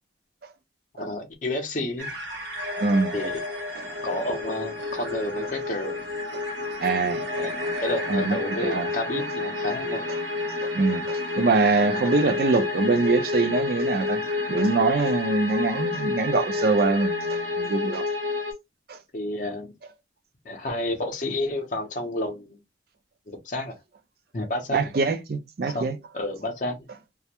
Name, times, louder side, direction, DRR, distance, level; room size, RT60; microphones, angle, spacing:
voice 1, 1.0-2.1 3.1-3.4 4.0-6.0 7.4-10.1 19.1-19.7 20.5-22.6 23.3-23.8 24.3-24.8 25.6-25.9 26.1-26.8, left 1 dB, 45° left, 0.6 m, -30 dB
sound 1, 2.0-18.5, left 3 dB, 75° right, 0.9 m, -29 dB
voice 2, 2.8-3.1 6.8-7.2 8.1-8.4 8.6-8.9 10.6-14.2 14.5-18.1 18.9-19.0 24.7-26.0, right 3 dB, 55° right, 0.4 m, -24 dB
2.3 x 2.0 x 2.8 m
head